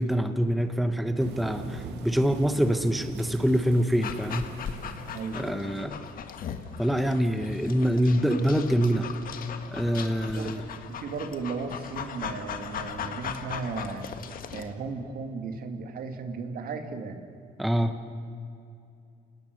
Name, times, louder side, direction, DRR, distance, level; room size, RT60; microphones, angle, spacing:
voice 1, 0.0-4.5 5.3-6.1 6.8-9.1 9.7-10.6 17.6-17.9, equal, ahead, 7 dB, 1.1 m, -25 dB
sound 1, 1.2-5.7, right 5 dB, 85° right, 2.1 m, -42 dB
Dog, 4.0-14.7, left 7 dB, 55° left, 1.6 m, -38 dB
voice 2, 5.1-5.7 10.3-10.6 10.9-14.1 14.5-17.3, right 4 dB, 60° right, 6 dB, 2.3 m, -35 dB
29.0 x 19.0 x 6.6 m, 2.5 s
cardioid pair, 110°, 17 cm